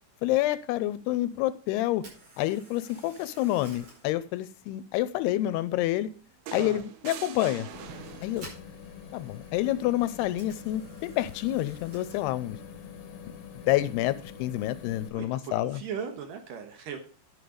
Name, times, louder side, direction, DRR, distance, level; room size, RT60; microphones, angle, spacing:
voice 1, 0.2-2.0 2.4-6.1 6.5-7.7 8.2-8.5 9.1-12.6 13.7-15.8, left 15 dB, 85° left, 16 dB, 2.6 m, -28 dB
Camera, 1.9-16.0, right 1 dB, 35° right, 5.9 m, -56 dB
sound 1, 6.5-8.6 10.0-10.2, right 10 dB, 90° right, 3.1 m, -43 dB
sound 2, 7.7-15.1, left 7 dB, 65° left, 1.9 m, -45 dB
voice 2, 15.1-17.0, right 7 dB, 65° right, 6 dB, 2.5 m, -38 dB
11.0 x 6.5 x 5.0 m, 0.39 s
omnidirectional pair, 4.7 m